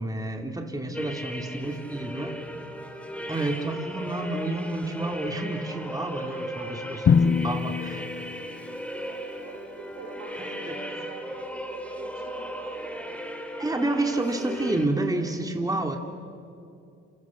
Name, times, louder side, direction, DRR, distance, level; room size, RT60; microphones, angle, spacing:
voice 1, 0.0-2.4 3.3-8.0 10.4-10.5 13.6-16.0, right 2 dB, 10° right, 4 dB, 2.8 m, -29 dB
sound 1, 0.9-14.9, equal, 5° left, 3.3 m, -37 dB
voice 2, 6.3-7.1 8.8-13.2, right 4 dB, 90° right, 1 dB, 6.8 m, -46 dB
Drum, 7.1-9.1, left 6 dB, 40° left, 0.7 m, -24 dB
28.5 x 28.0 x 7.4 m, 2.5 s
cardioid pair, 90°, 30 cm